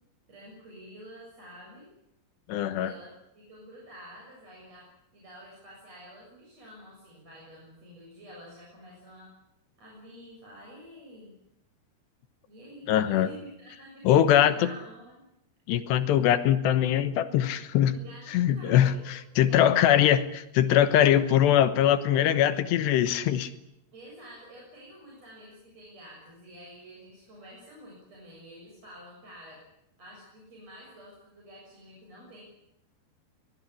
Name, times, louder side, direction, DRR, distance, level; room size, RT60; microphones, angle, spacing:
voice 1, 0.3-1.9 2.7-4.9 5.1-9.3 9.8-11.3 12.5-14.0 14.4-15.2 17.9-19.8 23.9-29.6 30.0-32.4, equal, 35° right, -3 dB, 8.1 m, -49 dB
voice 2, 2.5-2.9 12.9-13.3 14.1-14.7 15.7-17.9 18.3-23.5, left 10 dB, 80° left, 12 dB, 3.3 m, -22 dB
24.0 x 19.5 x 10.0 m, 0.83 s
omnidirectional pair, 5.1 m